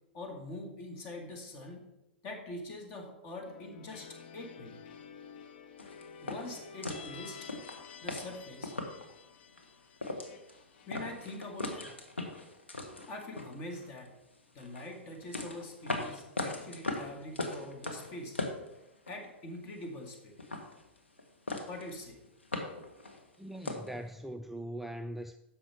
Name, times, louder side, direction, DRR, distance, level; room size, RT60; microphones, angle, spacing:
voice 1, 0.1-1.8 2.2-4.8 6.2-7.5 8.0-8.8 10.9-11.9 13.1-14.2 14.5-18.4 19.1-20.4 21.7-22.2, left 1 dB, 35° left, 2.2 m, -44 dB
sound 1, 3.4-12.3, left 6 dB, 55° left, 0.8 m, -51 dB
sound 2, 5.8-9.1 9.6-9.7 10.0-10.6 10.9-14.1 14.6-19.3 19.5-20.1 20.4-21.2 21.5-22.0 22.2-23.9, left 2 dB, 80° left, 1.5 m, -39 dB
voice 2, 23.4-25.4, right 1 dB, 5° right, 0.3 m, -41 dB
10.5 x 6.9 x 4.5 m
figure-of-eight pair, 100°, 6 cm